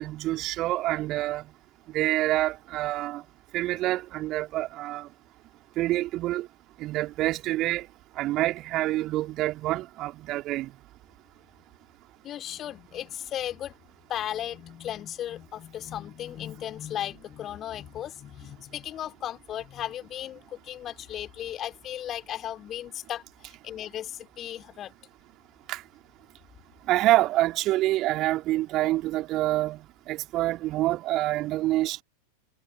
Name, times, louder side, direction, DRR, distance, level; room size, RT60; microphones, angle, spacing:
voice 1, 0.0-1.4 1.9-3.2 3.5-5.1 5.8-6.5 6.8-7.9 8.2-10.7 25.7-25.8 26.9-29.8 30.1-32.0, right 16 dB, 35° right, 3.4 m, -26 dB
voice 2, 12.2-13.7 14.1-24.9, left 11 dB, 30° left, 3.7 m, -36 dB
figure-of-eight pair, 90°, 0 cm